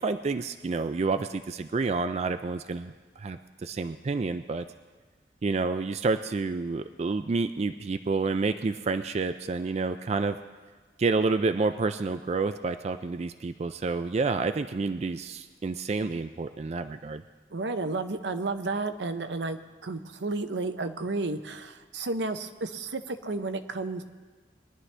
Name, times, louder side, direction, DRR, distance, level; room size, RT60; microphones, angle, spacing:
voice 1, 0.0-4.7 5.4-10.4 11.0-17.2, right 3 dB, 35° right, 9 dB, 0.3 m, -29 dB
voice 2, 17.5-24.0, right 3 dB, 80° right, 9 dB, 0.8 m, -32 dB
22.0 x 11.0 x 3.4 m, 1.4 s
head